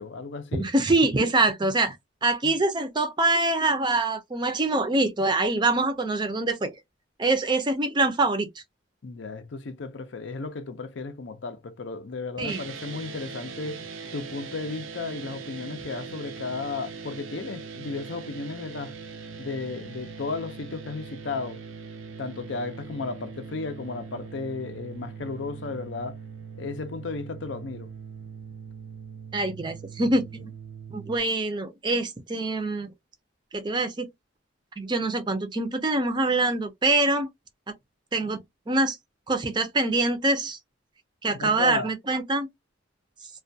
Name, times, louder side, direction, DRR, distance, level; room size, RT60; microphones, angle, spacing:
voice 1, 0.0-0.7 2.4-2.6 9.0-13.8 14.1-18.9 19.4-21.6 22.2-26.2 26.6-27.9 41.3-41.9, left 4 dB, 65° left, 0.5 m, -34 dB
voice 2, 0.5-2.0 2.2-6.7 7.2-8.5 12.4-12.6 29.3-30.5 30.9-32.9 33.5-34.1 34.8-37.3 37.7-37.8 38.1-38.4 38.7-39.0 39.3-40.6 41.2-42.5, right 2 dB, 25° right, 0.4 m, -24 dB
sound 1, 12.4-31.2, right 5 dB, 85° right, 0.5 m, -41 dB
2.3 x 2.2 x 2.6 m
head